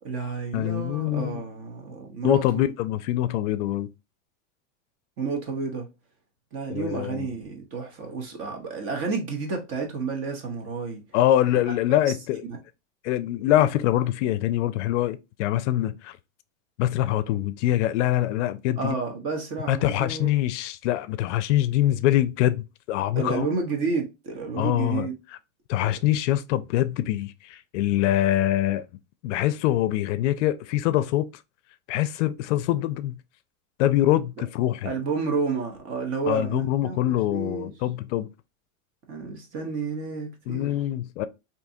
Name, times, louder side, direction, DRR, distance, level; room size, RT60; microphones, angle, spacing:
voice 1, 0.0-2.7 5.2-5.9 6.5-11.0 11.7-11.8 12.1-12.4 18.8-20.3 23.1-25.1 34.4-34.5 34.8-37.7 39.1-40.7, right 4 dB, 35° right, 0.9 m, -31 dB
voice 2, 0.5-1.4 2.2-3.9 6.7-7.3 11.1-12.4 13.0-16.2 16.8-19.0 19.7-23.5 24.6-25.1 25.7-28.8 29.2-31.3 31.9-33.2 33.8-34.9 36.3-38.3 40.5-41.3, left 13 dB, 65° left, 0.5 m, -24 dB
3.6 x 2.7 x 2.6 m
supercardioid pair, 155°, 39 cm